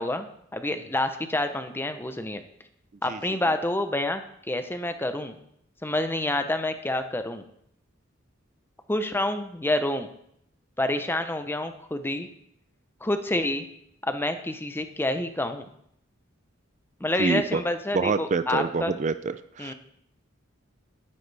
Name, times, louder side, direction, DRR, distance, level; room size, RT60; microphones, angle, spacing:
voice 1, 0.0-2.4 3.0-5.4 5.8-7.4 8.9-10.1 10.8-12.3 13.0-13.7 14.0-15.7 17.0-18.9 19.6-19.7, left 1 dB, 10° left, 8 dB, 0.7 m, -28 dB
voice 2, 17.2-17.6 17.9-19.7, right 4 dB, 35° right, 12 dB, 0.4 m, -27 dB
12.0 x 9.9 x 3.4 m, 0.72 s
head